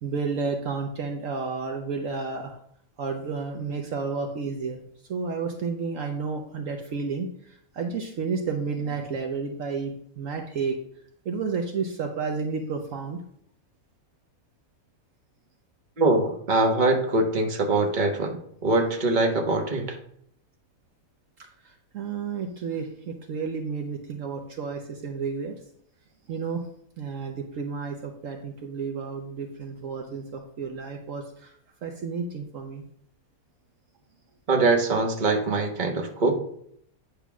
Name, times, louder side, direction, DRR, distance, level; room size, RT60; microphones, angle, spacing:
voice 1, 0.0-2.6 3.0-4.8 5.1-10.8 11.2-13.2 21.4-25.6 26.3-26.7 27.0-31.5 31.8-32.8, right 5 dB, 65° right, 3 dB, 1.1 m, -31 dB
voice 2, 16.0-20.0 34.5-36.3, right 2 dB, 35° right, 2 dB, 1.2 m, -23 dB
9.1 x 3.4 x 6.0 m, 0.68 s
omnidirectional pair, 1.5 m